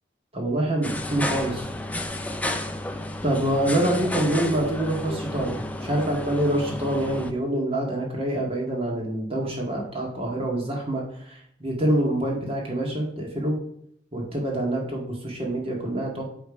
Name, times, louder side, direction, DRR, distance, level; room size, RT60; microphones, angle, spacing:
voice 1, 0.3-1.7 3.2-13.6 14.1-16.2, right 1 dB, 35° right, -1 dB, 1.7 m, -26 dB
sound 1, 0.8-7.3, left 1 dB, 10° left, 0.5 m, -32 dB
8.5 x 3.5 x 4.6 m, 0.69 s
head